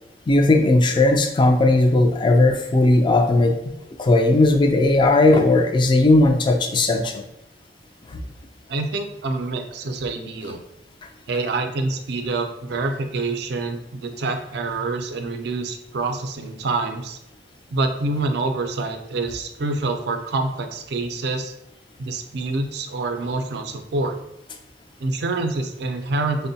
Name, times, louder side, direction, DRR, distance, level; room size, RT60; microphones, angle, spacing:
voice 1, 0.3-3.6 4.0-7.2 8.1-8.2, left 2 dB, 25° left, 5 dB, 0.3 m, -17 dB
voice 2, 8.7-10.6 11.3-17.2 17.7-21.5 22.0-24.2 25.0-26.5, right 3 dB, 65° right, 6 dB, 0.4 m, -26 dB
4.4 x 2.1 x 2.6 m, 0.85 s
head